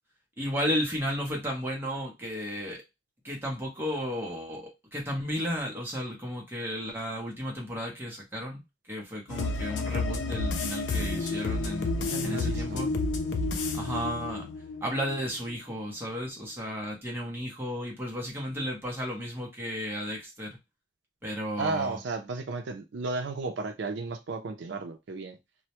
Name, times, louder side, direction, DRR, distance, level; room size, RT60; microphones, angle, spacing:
voice 1, 0.4-2.8 3.2-8.6 8.9-11.9 12.2-12.9 13.7-14.5 14.8-20.6 21.2-22.0, equal, 10° right, 0.7 m, -33 dB
sound 1, 9.3-15.3 15.7-15.8, left 3 dB, 75° left, 0.4 m, -30 dB
voice 2, 12.0-12.8 21.6-25.4, right 3 dB, 80° right, 0.4 m, -34 dB
2.2 x 2.1 x 2.8 m
head